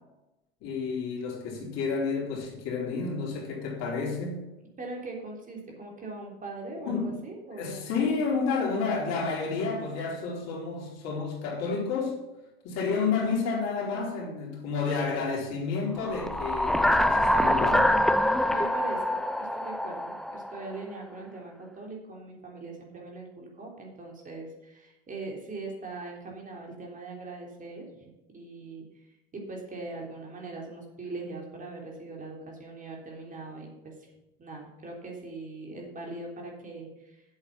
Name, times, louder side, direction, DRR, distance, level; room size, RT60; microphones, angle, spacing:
voice 1, 0.6-4.4 6.8-7.2 7.6-12.2 12.6-18.1, left 4 dB, 55° left, -2 dB, 4.2 m, -30 dB
voice 2, 4.8-7.9 18.4-29.0 29.3-34.1 34.4-37.2, right 3 dB, 25° right, -1 dB, 3.4 m, -41 dB
sound 1, 16.1-20.7, left 1 dB, ahead, 0.4 m, -25 dB
8.1 x 8.0 x 7.2 m, 0.99 s
hypercardioid pair, 85°, 31 cm